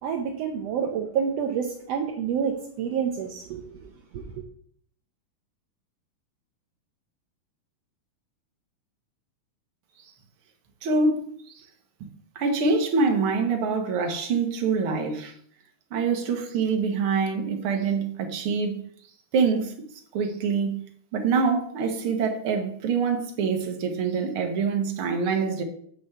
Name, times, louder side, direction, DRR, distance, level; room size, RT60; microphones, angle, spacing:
voice 1, 0.0-4.4, right 7 dB, 70° right, 1.6 m, -29 dB
voice 2, 10.8-11.3 12.0-12.1 12.3-15.3 15.9-18.8 19.3-19.7 20.1-20.8 21.1-25.6, right 4 dB, 55° right, 1.7 m, -25 dB
6.7 x 6.1 x 7.3 m
omnidirectional pair, 3.7 m